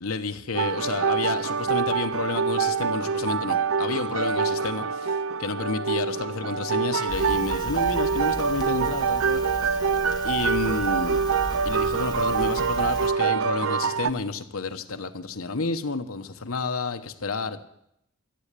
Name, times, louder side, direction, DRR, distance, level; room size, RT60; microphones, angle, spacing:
voice 1, 0.0-9.7 10.2-11.2 11.6-17.7, left 3 dB, 70° left, 7 dB, 1.0 m, -30 dB
sound 1, 0.5-14.1, right 5 dB, 65° right, 0.5 m, -25 dB
Crackle, 7.1-13.1, left 1 dB, 20° left, 1.2 m, -37 dB
13.5 x 8.6 x 8.2 m, 0.78 s
head